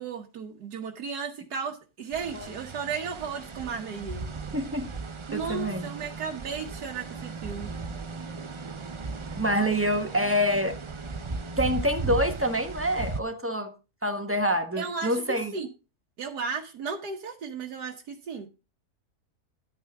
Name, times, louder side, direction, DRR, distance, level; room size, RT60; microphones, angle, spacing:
voice 1, 0.0-4.3 5.3-7.7 14.8-15.7 16.2-18.5, right 5 dB, 85° right, 1.7 m, -35 dB
sound 1, 2.1-13.2, right 4 dB, 45° right, 0.3 m, -37 dB
voice 2, 4.5-4.9 5.3-5.9 9.4-10.8 11.6-13.7 14.0-15.5, equal, 10° right, 1.1 m, -26 dB
11.0 x 9.0 x 3.4 m
omnidirectional pair, 1.7 m